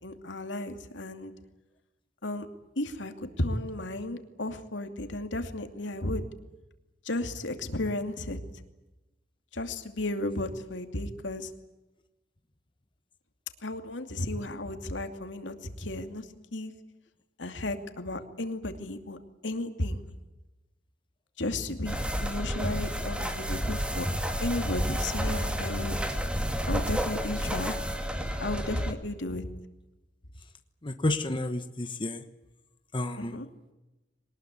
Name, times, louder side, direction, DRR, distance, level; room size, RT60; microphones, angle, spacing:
voice 1, 0.0-1.3 2.2-2.5 2.8-6.2 7.0-8.4 9.5-11.5 13.6-16.7 17.4-19.2 19.4-20.0 21.4-24.1 24.4-26.0 26.7-27.8 28.4-29.5 33.2-33.5, left 1 dB, 85° left, 7 dB, 2.6 m, -34 dB
sound 1, 21.9-28.9, equal, 5° right, 2.4 m, -31 dB
voice 2, 30.8-32.2 32.9-33.3, left 2 dB, 30° left, 7 dB, 1.3 m, -30 dB
22.5 x 20.0 x 9.7 m, 1.0 s
head